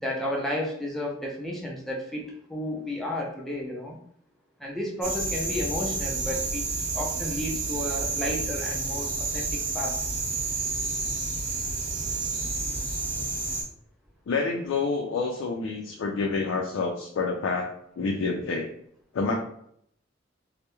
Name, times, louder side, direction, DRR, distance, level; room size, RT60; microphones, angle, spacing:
voice 1, 0.0-4.0 4.6-6.6 6.9-9.9, left 1 dB, ahead, -2 dB, 0.3 m, -32 dB
sound 1, 5.0-13.6, right 3 dB, 55° right, 0.8 m, -30 dB
voice 2, 14.3-17.7 18.0-18.7 19.1-19.3, left 4 dB, 85° left, 1 dB, 0.3 m, -28 dB
2.2 x 2.0 x 2.9 m, 0.68 s
head